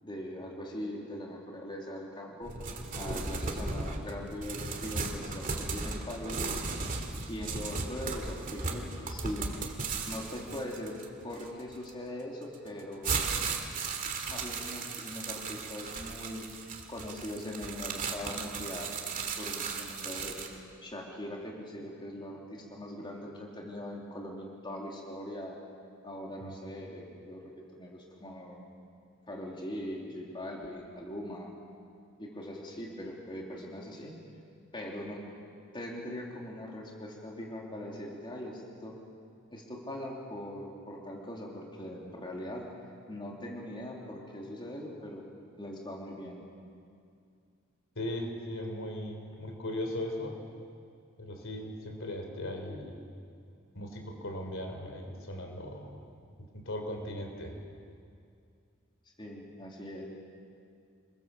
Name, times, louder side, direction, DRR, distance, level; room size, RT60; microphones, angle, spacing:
voice 1, 0.0-2.5 2.9-6.5 7.3-9.6 10.1-11.0 11.2-13.3 14.2-16.5 16.9-18.9 19.4-20.4 20.8-25.6 26.0-28.7 29.3-31.5 32.2-34.2 34.7-35.2 35.7-39.0 39.5-42.7 43.1-45.3 45.6-46.4 59.2-60.1, left 1 dB, 25° left, -2 dB, 3.3 m, -41 dB
sound 1, 2.4-11.9 12.5-20.6, right 4 dB, 40° right, 2.4 m, -36 dB
voice 2, 48.0-50.4 51.2-53.0 53.7-56.0 56.5-57.6, left 1 dB, 65° left, 4 dB, 3.8 m, -38 dB
27.5 x 22.5 x 7.2 m, 2.4 s
head